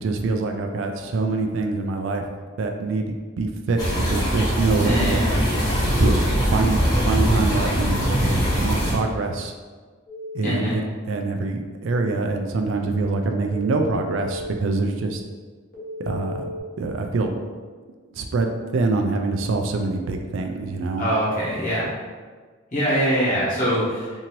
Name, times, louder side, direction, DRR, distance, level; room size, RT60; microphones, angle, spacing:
voice 1, 0.0-2.2 2.6-3.1 3.4-3.8 4.1-5.2 6.0-6.2 6.4-6.8 7.0-8.1 8.6-9.5 10.3-10.8 11.1-15.2 16.1-16.5 16.8-17.3 18.2-21.1, right 3 dB, 70° right, 4 dB, 0.3 m, -24 dB
sound 1, 3.8-8.9, equal, 20° left, 1.0 m, -21 dB
voice 2, 4.8-5.5 10.4-10.8 21.0-21.9 22.7-24.1, equal, 40° left, -9 dB, 1.2 m, -23 dB
Telephone, 10.1-10.6 13.5-14.5 15.7-16.6, left 2 dB, 55° left, 1.0 m, -34 dB
2.8 x 2.6 x 2.9 m, 1.5 s
head